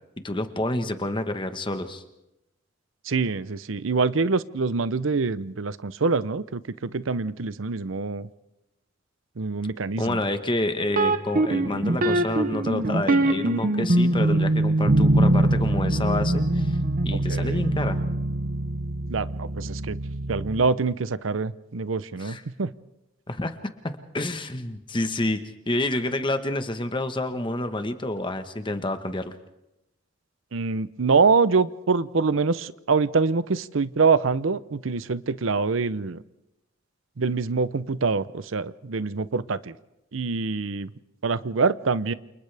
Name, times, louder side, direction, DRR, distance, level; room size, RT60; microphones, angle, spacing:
voice 1, 0.2-2.0 10.0-16.8 17.0-18.0 22.2-22.4 23.3-23.5 24.1-25.4 25.7-29.3, left 1 dB, 25° left, 8 dB, 1.3 m, -28 dB
voice 2, 3.0-8.3 9.4-10.2 17.3-17.6 19.1-20.0 20.3-22.7 30.5-36.2 37.2-39.7 40.1-40.9 41.2-42.1, right 4 dB, 85° right, 16 dB, 0.7 m, -25 dB
sound 1, 10.9-20.7, right 1 dB, 45° right, 0.9 m, -23 dB
28.5 x 28.5 x 3.5 m, 0.93 s
head